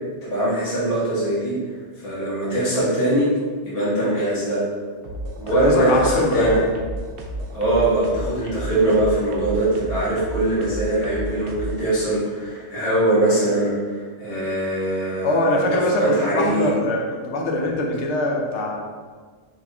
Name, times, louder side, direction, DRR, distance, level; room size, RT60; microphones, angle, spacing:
voice 1, 0.2-1.6 2.0-3.3 3.6-4.6 5.4-6.6 7.5-15.6 15.9-16.7, right 1 dB, 35° left, -10 dB, 1.4 m, -22 dB
sound 1, 5.0-11.8, right 1 dB, 75° right, 0.9 m, -32 dB
voice 2, 5.5-6.7 15.2-18.8, left 1 dB, 80° left, 0 dB, 1.0 m, -22 dB
4.1 x 3.1 x 3.5 m, 1.5 s
omnidirectional pair, 1.2 m